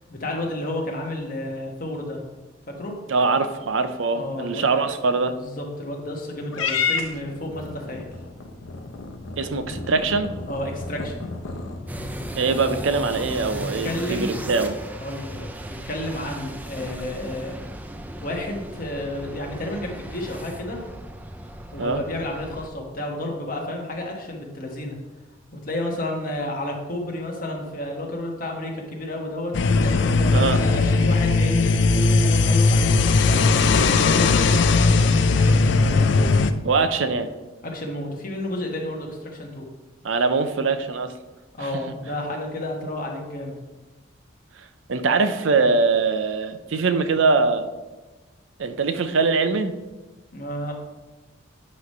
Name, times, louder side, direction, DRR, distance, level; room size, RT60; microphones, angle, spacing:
voice 1, 0.1-2.2 2.7-2.9 4.1-4.8 5.4-8.1 10.5-11.2 13.5-14.3 15.0-17.6 18.2-20.9 21.7-25.0 25.5-36.2 37.6-39.7 41.6-43.6 50.3-50.7, left 1 dB, 45° left, 1 dB, 1.2 m, -31 dB
voice 2, 3.1-5.3 9.4-10.3 12.3-14.8 21.8-22.0 30.3-30.6 36.6-37.3 40.0-41.1 44.9-47.7 48.6-49.7, right 4 dB, 75° right, 9 dB, 0.5 m, -22 dB
Purr / Meow, 6.5-13.0, left 5 dB, 85° left, 0.8 m, -32 dB
sound 1, 11.9-22.7, right 1 dB, 10° right, 0.3 m, -36 dB
sound 2, 29.5-36.5, left 3 dB, 60° left, 0.4 m, -18 dB
8.1 x 3.2 x 5.3 m, 1.2 s
head